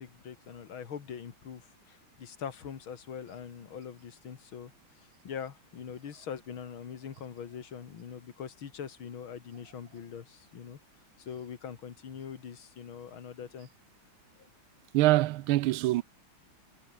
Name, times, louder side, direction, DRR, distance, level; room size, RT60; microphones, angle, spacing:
voice 1, 0.0-4.7 5.0-10.8 11.2-13.7 14.4-14.5, left 7 dB, 75° left, 2.6 m, -43 dB
voice 2, 14.9-16.0, right 17 dB, 85° right, 1.5 m, -24 dB
omnidirectional pair, 2.3 m